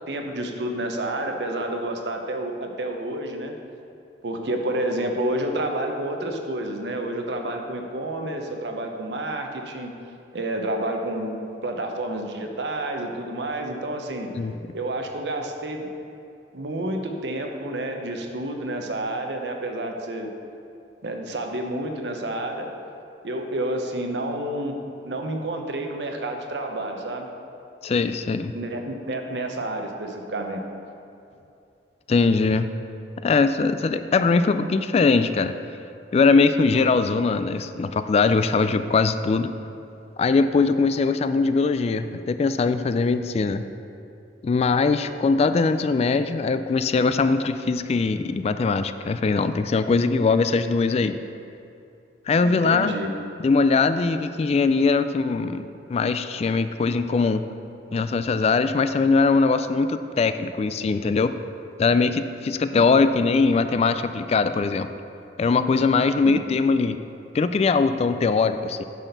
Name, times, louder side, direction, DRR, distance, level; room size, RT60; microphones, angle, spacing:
voice 1, 0.1-3.6 4.2-9.9 10.3-14.3 14.7-15.9 16.5-20.3 21.0-22.7 23.2-24.8 25.0-27.3 28.5-30.6 52.4-53.1 62.7-62.8 66.2-66.4, right 1 dB, 75° right, 3 dB, 0.9 m, -29 dB
voice 2, 27.8-28.5 32.1-32.7 33.2-35.5 36.1-39.5 40.2-43.7 44.4-51.2 52.3-52.9 53.4-57.5 57.9-61.3 61.8-64.9 65.4-67.0 67.3-68.8, left 4 dB, 35° left, 11 dB, 0.3 m, -21 dB
9.9 x 4.2 x 6.6 m, 2.6 s
head